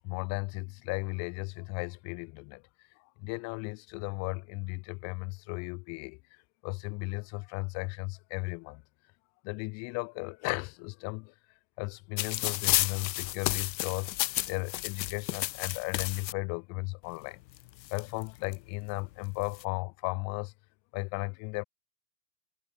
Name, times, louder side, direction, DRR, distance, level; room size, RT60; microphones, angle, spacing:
voice 1, 0.0-2.6 3.0-6.2 6.6-8.8 9.4-11.3 11.8-14.1 14.5-17.4 17.9-20.5 20.9-21.6, left 31 dB, 30° left, 2.8 m, -35 dB
sound 1, 12.2-16.3 17.2-17.3 17.6-18.5 19.3-19.6, left 16 dB, 85° left, 0.7 m, -32 dB
supercardioid pair, 165°, 50 cm